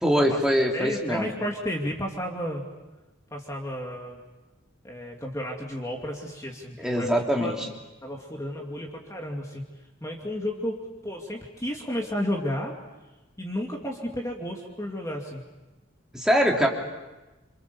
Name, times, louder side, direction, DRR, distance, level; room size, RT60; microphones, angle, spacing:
voice 1, 0.0-1.3 6.8-7.7 16.1-16.7, equal, 5° right, -1 dB, 3.0 m, -23 dB
voice 2, 0.7-2.6 3.3-4.2 4.8-7.1 7.4-7.5 8.0-9.6 10.0-12.7 13.4-15.4, equal, 15° left, 0 dB, 2.5 m, -32 dB
28.0 x 27.5 x 7.1 m, 1.1 s
head